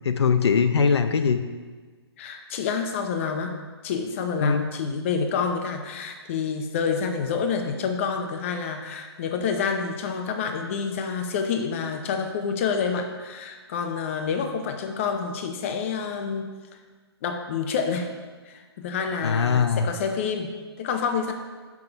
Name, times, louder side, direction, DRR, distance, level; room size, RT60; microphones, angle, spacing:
voice 1, 0.0-1.4 4.4-4.7 19.2-19.9, left 5 dB, 75° left, 9 dB, 0.6 m, -21 dB
voice 2, 2.2-3.6 3.8-16.5 17.2-18.1 18.5-21.3, left 6 dB, 30° left, 5 dB, 0.7 m, -28 dB
7.4 x 6.0 x 5.1 m, 1.4 s
hypercardioid pair, 160°, 14 cm